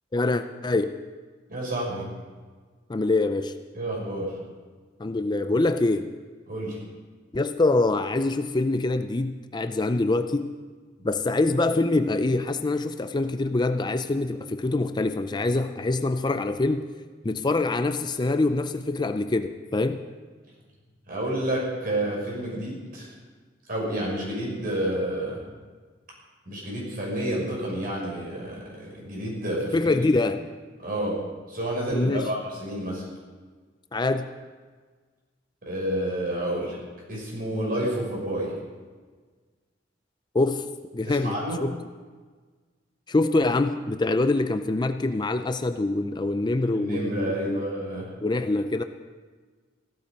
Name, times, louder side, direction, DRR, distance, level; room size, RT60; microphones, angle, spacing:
voice 1, 0.1-0.9 2.9-3.5 5.0-6.1 7.3-10.5 11.0-16.9 17.2-20.0 29.7-30.4 31.9-32.3 33.9-34.3 40.3-40.7 40.9-41.8 43.1-47.7 48.2-48.8, left 2 dB, 25° left, 9 dB, 0.5 m, -25 dB
voice 2, 1.5-2.0 3.7-4.3 6.5-6.8 21.1-23.1 23.7-25.4 26.5-29.8 30.8-31.2 31.5-33.0 35.6-36.8 37.1-38.5 41.0-41.6 46.7-48.1, right 1 dB, 50° right, -3 dB, 6.0 m, -29 dB
16.0 x 13.0 x 5.3 m, 1.4 s
head